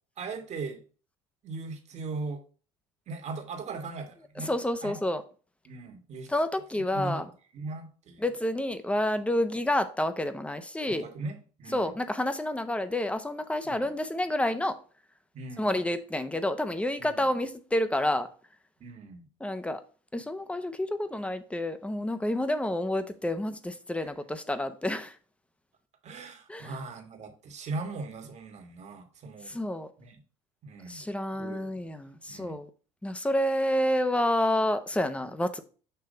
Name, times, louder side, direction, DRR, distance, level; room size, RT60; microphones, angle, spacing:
voice 1, 0.2-0.8 1.4-2.4 3.1-4.5 4.8-5.0 5.6-6.3 6.9-7.2 7.5-8.2 10.9-11.9 13.6-13.9 15.3-15.8 17.0-17.2 18.8-19.2 24.0-24.1 26.0-29.6 30.0-30.2 30.6-31.0 31.3-31.9 32.3-32.6, right 3 dB, 45° right, 1.6 m, -39 dB
voice 2, 4.4-5.2 6.3-7.2 8.2-11.0 11.7-14.8 15.6-18.3 19.4-19.8 20.1-25.2 26.5-26.7 29.5-29.9 30.9-32.7 33.0-35.6, left 1 dB, 10° left, 0.8 m, -29 dB
6.9 x 3.1 x 5.1 m
supercardioid pair, 80°, 16 cm